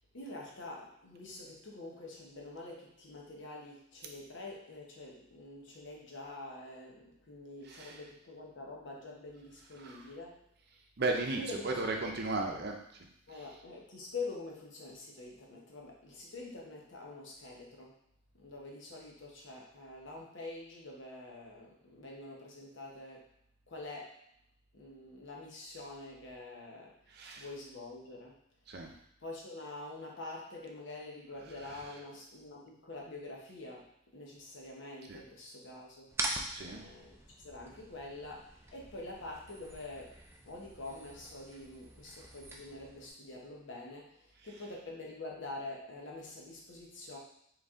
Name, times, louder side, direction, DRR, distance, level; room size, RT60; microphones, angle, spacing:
voice 1, 0.1-10.4 11.4-11.9 13.3-18.0 18.3-23.3 23.7-24.2 24.7-28.4 29.2-40.2 40.5-47.2, left 2 dB, 60° left, -2 dB, 1.0 m, -46 dB
voice 2, 7.7-8.0 9.8-10.0 11.0-12.7 13.3-13.5 27.1-27.5 28.7-28.9 31.6-31.8 35.1-35.2 36.5-36.8 44.4-44.7, right 2 dB, 50° right, 2 dB, 0.6 m, -36 dB
sound 1, 36.1-43.1, right 2 dB, 10° right, 0.4 m, -43 dB
4.0 x 3.2 x 3.6 m, 0.74 s
head